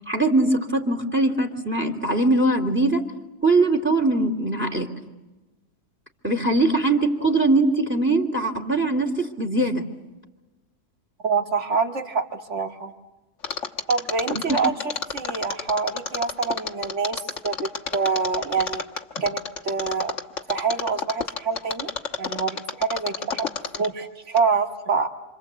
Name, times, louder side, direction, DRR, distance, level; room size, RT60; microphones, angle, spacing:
voice 1, 0.1-3.0 3.4-4.9 6.2-9.8 14.3-14.6, right 2 dB, 5° right, 5 dB, 2.6 m, -21 dB
voice 2, 11.2-12.9 13.9-18.8 19.2-20.1 20.5-21.9 22.2-25.1, right 5 dB, 45° right, 5 dB, 2.3 m, -26 dB
Mechanisms, 13.4-24.0 24.4-24.5, left 6 dB, 50° left, 1.5 m, -30 dB
27.5 x 26.5 x 8.2 m, 1.1 s
omnidirectional pair, 1.7 m